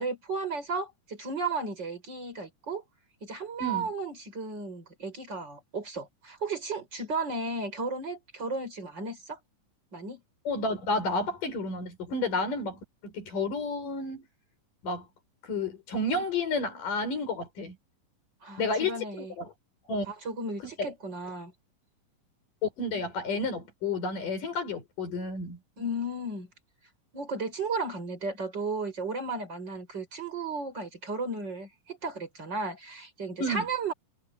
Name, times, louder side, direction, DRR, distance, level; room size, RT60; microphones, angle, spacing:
voice 1, 0.0-2.8 3.2-9.4 9.9-10.2 18.4-19.3 20.1-21.5 25.8-26.5 27.1-33.9, right 3 dB, 30° right, 6.0 m, -34 dB
voice 2, 10.4-14.3 14.8-15.1 15.4-17.8 18.6-19.5 19.9-20.1 20.8-20.9 22.6-25.6 33.4-33.7, left 2 dB, 70° left, 6.8 m, -31 dB
omnidirectional pair, 3.9 m